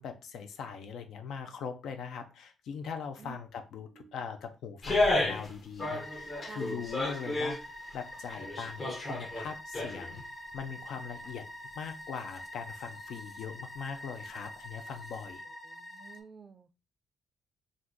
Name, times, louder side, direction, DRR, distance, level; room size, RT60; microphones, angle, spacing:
voice 1, 0.0-10.2 10.5-11.5 11.8-15.4, left 6 dB, 75° left, 6 dB, 0.5 m, -41 dB
sound 1, 4.8-5.5 5.8-7.6 8.1-10.2 10.5-10.6, left 2 dB, 35° left, 0.9 m, -31 dB
sound 2, 5.8-16.2, equal, 20° left, 0.5 m, -46 dB
voice 2, 15.7-16.7, right 5 dB, 35° right, 10 dB, 0.4 m, -50 dB
2.7 x 2.5 x 3.6 m, 0.30 s
cardioid pair, 90°, 0 cm